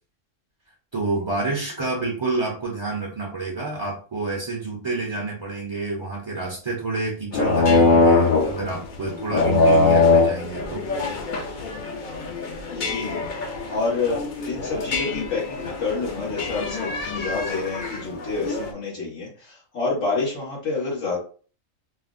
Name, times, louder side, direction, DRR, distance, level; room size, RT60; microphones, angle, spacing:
voice 1, 0.9-10.9, right 3 dB, 35° right, -2 dB, 0.4 m, -28 dB
sound 1, 7.3-18.7, left 3 dB, 55° left, 0.6 m, -22 dB
voice 2, 12.7-21.2, left 3 dB, 85° left, -6 dB, 2.1 m, -28 dB
4.0 x 2.0 x 2.4 m, 0.39 s
omnidirectional pair, 1.3 m